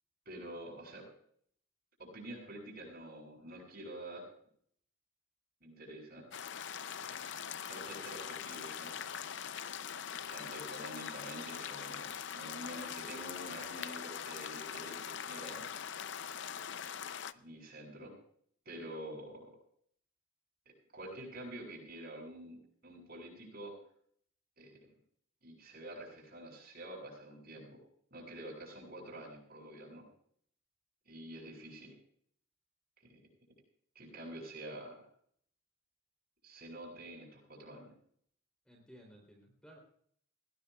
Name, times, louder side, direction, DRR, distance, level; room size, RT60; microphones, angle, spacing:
voice 1, 0.3-1.1 2.0-4.3 5.6-6.3 7.0-7.2 7.7-9.0 10.2-15.6 17.3-18.1 18.7-19.5 20.9-23.7 24.6-24.8 25.4-27.8 28.1-30.1 31.1-31.9 33.0-33.2 33.9-35.0 36.4-37.9, right 1 dB, 45° right, 0 dB, 7.7 m, -47 dB
sound 1, 6.3-17.3, left 8 dB, 55° left, 0.6 m, -42 dB
voice 2, 38.7-39.8, equal, 5° left, 1 dB, 3.3 m, -57 dB
20.0 x 18.5 x 2.4 m, 0.63 s
head